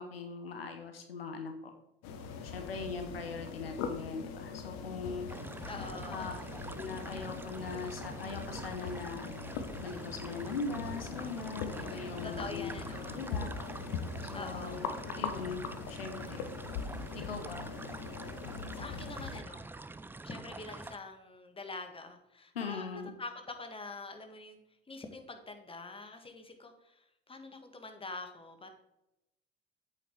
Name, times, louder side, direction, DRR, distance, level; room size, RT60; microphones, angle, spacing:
voice 1, 0.0-1.7 2.4-5.3 6.1-6.3 6.8-9.3 9.8-12.7 13.1-13.5 14.3-14.9 15.1-15.6 15.9-16.4 17.2-17.7 22.5-23.1, left 4 dB, 85° left, 6 dB, 1.0 m, -40 dB
sound 1, 2.0-19.4, left 5 dB, 60° left, 1.2 m, -41 dB
voice 2, 3.2-3.8 5.6-6.5 11.7-13.2 14.3-14.8 18.7-19.7 20.2-24.6 24.9-28.7, left 3 dB, 20° left, 5 dB, 1.7 m, -45 dB
sound 2, 5.3-21.0, right 3 dB, 5° right, 0.4 m, -46 dB
8.3 x 7.1 x 4.7 m, 0.87 s
figure-of-eight pair, 60°, 29 cm